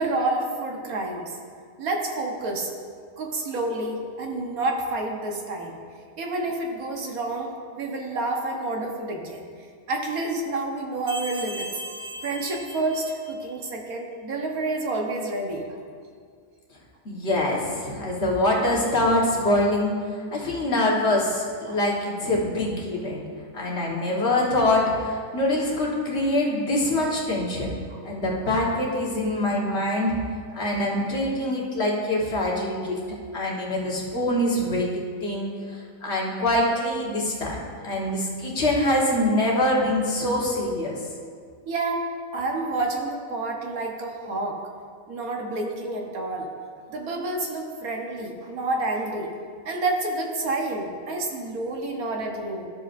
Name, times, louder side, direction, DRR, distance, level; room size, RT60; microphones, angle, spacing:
voice 1, 0.0-1.4 1.8-2.7 3.2-5.8 6.2-9.4 9.9-11.7 12.2-15.8 21.7-21.8 27.9-28.0 41.7-42.0 42.3-44.6 45.1-46.5 46.9-49.3 49.6-52.7, right 2 dB, 75° right, 1 dB, 1.5 m, -29 dB
sound 1, 11.1-13.6, right 1 dB, 15° right, 2.0 m, -37 dB
voice 2, 17.0-19.9 20.3-23.2 23.5-27.7 28.0-30.1 30.5-33.0 33.3-34.9 35.2-41.0, left 1 dB, 50° left, -3 dB, 1.6 m, -24 dB
12.5 x 6.7 x 2.6 m, 2.1 s
omnidirectional pair, 1.5 m